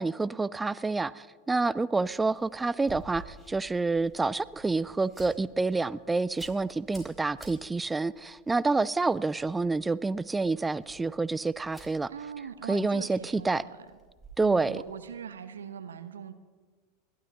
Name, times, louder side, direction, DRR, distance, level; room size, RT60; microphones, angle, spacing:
voice 1, 0.0-12.1 12.7-13.6 14.4-14.8, right 3 dB, 15° right, 18 dB, 0.3 m, -28 dB
sound 1, 2.0-15.2, right 2 dB, 5° left, 4.3 m, -54 dB
voice 2, 12.1-13.9 14.4-16.3, right 7 dB, 80° right, 11 dB, 0.8 m, -41 dB
29.5 x 12.0 x 2.8 m, 1.4 s
hypercardioid pair, 85°, 0 cm